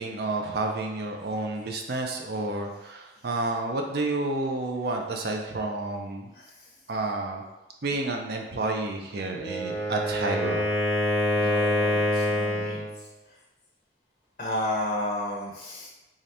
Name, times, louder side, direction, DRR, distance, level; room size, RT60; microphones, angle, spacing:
voice 1, 0.0-6.3 6.9-7.4 7.8-10.7, right 2 dB, 60° right, 2 dB, 0.5 m, -30 dB
voice 2, 6.3-6.7 11.4-12.9 14.4-15.9, left 1 dB, 45° left, -2 dB, 0.5 m, -32 dB
Wind instrument woodwind instrument, 9.3-12.9, left 1 dB, 10° right, 1.1 m, -26 dB
3.7 x 2.8 x 3.3 m, 1.0 s
head